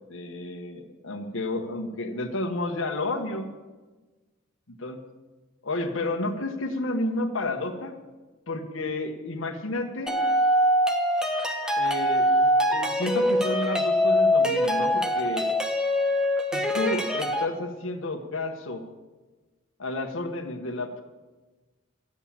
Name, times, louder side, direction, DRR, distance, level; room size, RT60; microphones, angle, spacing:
voice 1, 0.1-3.5 4.7-5.0 5.6-7.9 8.5-10.2 11.8-15.5 16.5-18.8 19.8-21.0, left 2 dB, 70° left, 3 dB, 1.4 m, -31 dB
sound 1, 10.1-17.5, equal, 5° right, 1.0 m, -23 dB
12.5 x 8.0 x 8.8 m, 1.2 s
head